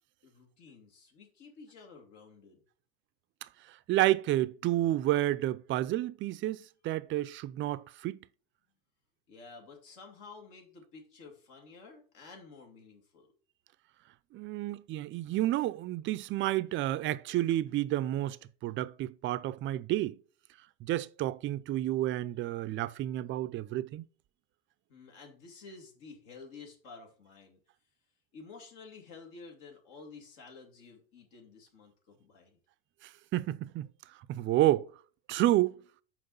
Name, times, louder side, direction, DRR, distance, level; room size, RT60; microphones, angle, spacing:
voice 1, 0.2-2.6 9.3-13.3 24.9-27.6 28.3-32.6, left 4 dB, 60° left, 2.3 m, -51 dB
voice 2, 3.7-8.2 14.3-18.4 18.6-20.2 20.8-24.0 33.0-33.9 34.3-34.9 35.3-35.7, right 15 dB, 40° right, 0.5 m, -30 dB
5.9 x 4.7 x 5.4 m
hypercardioid pair, 95°, 31 cm